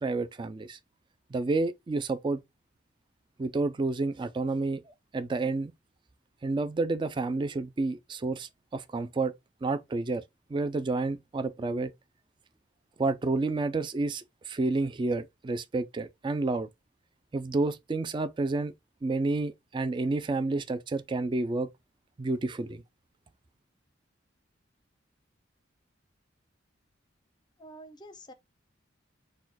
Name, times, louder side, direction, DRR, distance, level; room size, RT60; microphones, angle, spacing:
voice 1, 0.0-0.8 1.3-2.4 3.4-4.8 5.1-5.7 6.4-9.3 9.6-10.2 10.5-11.9 13.0-16.7 17.3-18.7 19.0-21.7 22.2-22.8, right 3 dB, 25° right, 0.3 m, -30 dB
voice 2, 27.6-28.3, right 1 dB, 20° left, 0.6 m, -47 dB
4.3 x 2.2 x 4.0 m
head